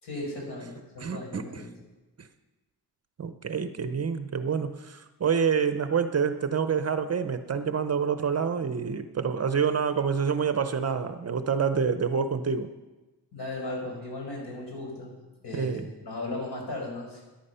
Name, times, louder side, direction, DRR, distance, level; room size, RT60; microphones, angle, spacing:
voice 1, 0.0-1.7 13.3-15.1 15.4-17.2, left 2 dB, 65° left, 0 dB, 4.9 m, -36 dB
voice 2, 1.0-1.6 2.2-2.3 3.2-12.7 15.5-15.9, right 6 dB, 35° right, 10 dB, 0.6 m, -27 dB
14.0 x 10.5 x 5.6 m, 1.1 s
wide cardioid pair, 160°, 42 cm